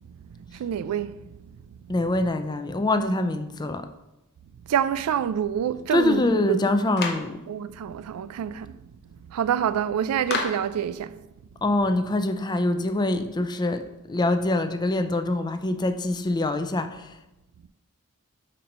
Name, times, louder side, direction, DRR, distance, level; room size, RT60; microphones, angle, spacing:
voice 1, 0.1-1.4 1.8-2.0 4.7-6.6 7.5-8.8 9.1-11.2, right 9 dB, 85° right, 0.3 m, -27 dB
voice 2, 1.9-3.9 5.9-7.4 11.6-13.8 14.1-17.1, left 2 dB, 20° left, 0.4 m, -24 dB
Clapping, 7.0-7.3 10.3-10.7, left 4 dB, 50° left, 0.7 m, -29 dB
5.2 x 4.3 x 5.1 m
head